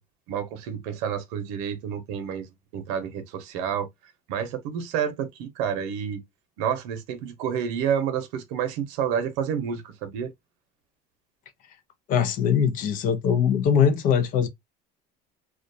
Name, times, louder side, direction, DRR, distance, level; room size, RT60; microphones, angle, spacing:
voice 1, 0.3-2.5 2.7-3.9 4.3-6.2 6.6-10.3, right 8 dB, 90° right, 0.7 m, -29 dB
voice 2, 12.1-14.5, left 7 dB, 45° left, 0.5 m, -21 dB
2.3 x 2.2 x 2.6 m
cardioid pair, 145°, 19 cm